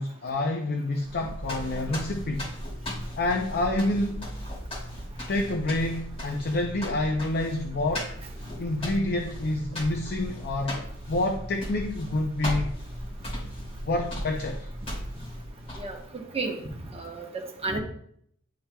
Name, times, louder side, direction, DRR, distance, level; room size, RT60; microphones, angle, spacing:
voice 1, 0.0-2.5 3.2-4.3 5.3-8.1 8.6-12.8 13.9-14.7, left 2 dB, 45° left, 4 dB, 0.5 m, -28 dB
sound 1, 1.0-16.1, equal, 30° left, 2.6 m, -36 dB
voice 2, 15.8-16.6 16.9-17.3 17.6-17.8, right 3 dB, 25° right, 1 dB, 1.0 m, -32 dB
10.5 x 4.3 x 2.3 m, 0.68 s
head